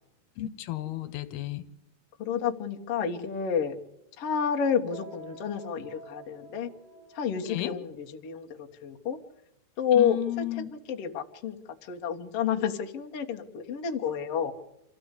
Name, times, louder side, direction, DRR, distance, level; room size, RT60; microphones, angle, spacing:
voice 1, 0.4-1.6 7.4-7.8 9.9-10.7, left 15 dB, 80° left, 12 dB, 2.9 m, -33 dB
voice 2, 2.2-3.8 4.2-6.7 7.1-9.2 9.8-10.5 10.7-11.6 11.9-14.5, left 7 dB, 50° left, 2 dB, 2.0 m, -29 dB
sound 1, 4.9-7.7, right 3 dB, 65° right, 4.9 m, -49 dB
26.5 x 15.0 x 8.3 m, 0.88 s
omnidirectional pair, 4.5 m